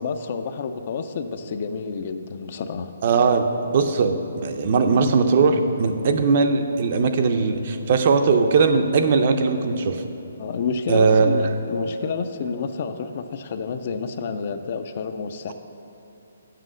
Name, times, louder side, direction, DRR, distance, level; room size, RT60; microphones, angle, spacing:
voice 1, 0.0-2.9 10.4-15.5, left 5 dB, 40° left, 9 dB, 0.4 m, -29 dB
voice 2, 3.0-10.0 10.9-11.3, right 4 dB, 40° right, 7 dB, 0.5 m, -19 dB
7.5 x 5.5 x 6.2 m, 2.9 s
hypercardioid pair, 170°, 0 cm